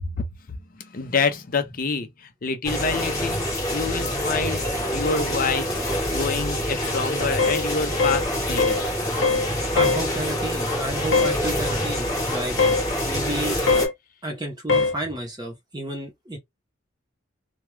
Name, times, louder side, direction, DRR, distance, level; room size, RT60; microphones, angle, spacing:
voice 1, 0.7-3.4 3.7-4.7 4.9-5.8 6.1-8.8, left 4 dB, 40° left, 0.5 m, -27 dB
sound 1, 2.6-13.9, equal, 15° left, 1.0 m, -26 dB
sound 2, 7.4-7.6 8.0-8.2 8.6-8.8 9.2-9.5 9.8-10.0 11.1-11.4 12.6-12.8 13.7-13.9 14.7-14.9, left 4 dB, 70° left, 0.8 m, -20 dB
voice 2, 9.4-12.6 13.0-13.6 14.2-16.4, right 1 dB, 20° right, 0.7 m, -31 dB
2.2 x 2.2 x 3.0 m
head